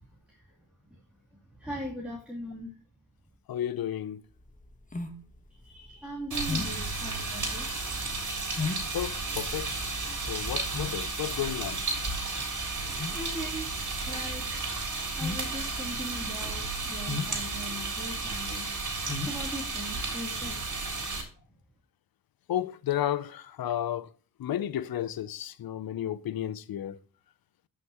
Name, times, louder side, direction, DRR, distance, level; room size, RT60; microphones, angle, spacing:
voice 1, 1.6-2.7 5.6-8.2 13.1-13.8 14.0-14.8 15.1-18.7 19.0-20.7, equal, 5° right, 2.9 m, -40 dB
voice 2, 3.5-4.2 8.9-9.8 10.3-11.8 22.5-24.1 24.4-27.0, left 11 dB, 70° left, 0.7 m, -32 dB
sound 1, 4.3-20.7, left 4 dB, 20° left, 1.4 m, -39 dB
sound 2, 6.3-21.2, right 3 dB, 50° right, 3.6 m, -33 dB
13.0 x 6.0 x 3.0 m
cardioid pair, 65°, 37 cm